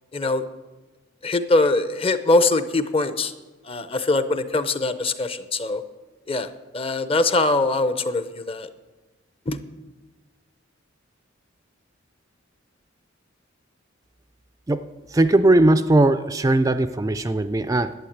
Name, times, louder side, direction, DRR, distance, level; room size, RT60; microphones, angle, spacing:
voice 1, 0.1-0.4 1.2-3.3 3.7-5.8 6.3-8.7 9.5-9.6, left 2 dB, 30° left, 12 dB, 0.7 m, -22 dB
voice 2, 15.1-17.9, right 2 dB, 15° right, 11 dB, 0.4 m, -19 dB
11.5 x 8.5 x 8.7 m, 1.2 s
head